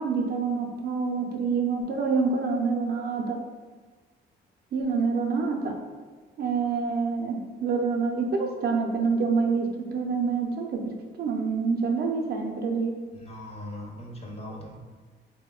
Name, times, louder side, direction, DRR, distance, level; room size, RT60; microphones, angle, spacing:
voice 1, 0.0-3.4 4.7-5.7 6.4-10.8 11.2-12.9, right 4 dB, 55° right, 2 dB, 0.4 m, -27 dB
voice 2, 13.1-14.8, left 1 dB, 30° left, -1 dB, 0.5 m, -39 dB
2.8 x 2.0 x 2.3 m, 1.4 s
cardioid pair, 90°, 20 cm